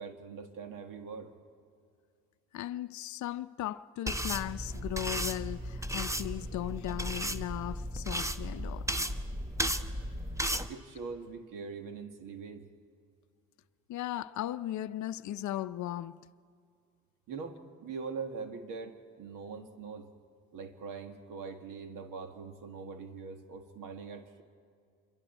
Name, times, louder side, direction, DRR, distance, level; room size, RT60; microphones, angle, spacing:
voice 1, 0.0-1.3 10.7-12.7 17.3-20.1 20.5-24.4, right 5 dB, 70° right, 1.9 m, -42 dB
voice 2, 2.5-8.9 13.9-16.2, left 13 dB, 60° left, 0.6 m, -37 dB
sound 1, 4.1-10.7, equal, 10° right, 1.0 m, -35 dB
27.0 x 23.0 x 4.4 m
supercardioid pair, 60°, 34 cm